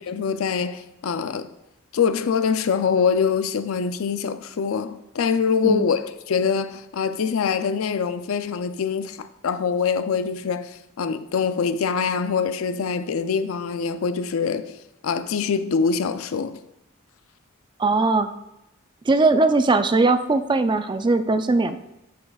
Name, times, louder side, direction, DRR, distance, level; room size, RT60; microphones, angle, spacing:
voice 1, 0.1-1.5 1.9-14.7 15.0-16.6, left 6 dB, 85° left, 0.4 m, -24 dB
voice 2, 17.8-18.3 19.1-21.8, right 3 dB, 20° right, 0.3 m, -19 dB
10.0 x 5.6 x 2.3 m
head